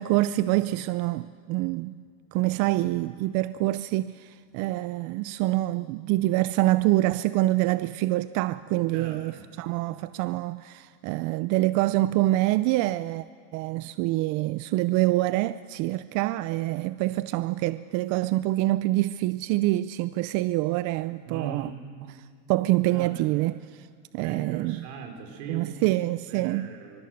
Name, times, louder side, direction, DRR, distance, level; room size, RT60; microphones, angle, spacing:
voice 1, 0.0-2.0 2.3-13.2 13.5-21.7 22.5-23.9 24.1-24.8 25.5-26.7, right 17 dB, 50° right, 0.5 m, -26 dB
voice 2, 8.9-9.5 21.3-21.8 22.8-23.4 24.2-25.9 26.3-27.0, right 6 dB, 80° right, 4.6 m, -40 dB
24.5 x 23.0 x 6.5 m
supercardioid pair, 135°, 37 cm